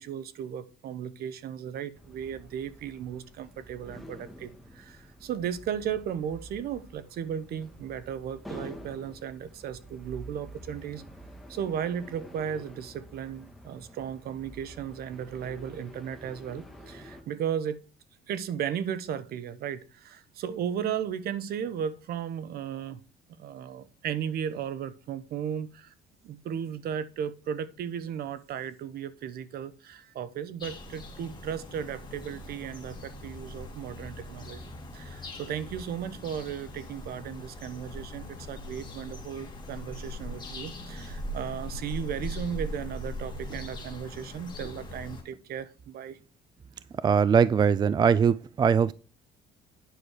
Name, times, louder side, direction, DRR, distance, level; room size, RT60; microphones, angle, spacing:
voice 1, 0.0-11.0 11.5-17.8 18.3-23.0 23.4-25.9 26.2-46.2, right 8 dB, 65° right, 1.0 m, -35 dB
sound 1, 1.9-17.2, equal, ahead, 2.0 m, -48 dB
sound 2, 30.6-45.2, left 1 dB, 25° left, 3.0 m, -40 dB
voice 2, 46.9-48.9, right 6 dB, 25° right, 0.3 m, -21 dB
9.6 x 6.3 x 5.0 m
cardioid pair, 110°, 17 cm